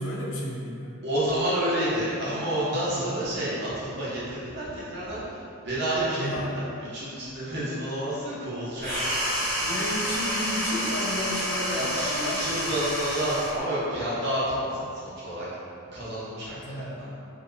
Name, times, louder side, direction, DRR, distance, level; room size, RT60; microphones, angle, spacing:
voice 1, 0.0-1.0 2.6-3.3 6.2-6.6 9.6-12.5 16.5-17.1, left 1 dB, 65° left, -3 dB, 0.4 m, -32 dB
voice 2, 1.0-9.1 9.5-9.7 11.7-15.5 15.9-17.1, right 1 dB, 50° right, -9 dB, 0.7 m, -30 dB
sound 1, 8.8-13.6, equal, 10° left, 0.8 m, -29 dB
2.6 x 2.2 x 2.6 m, 2.4 s
head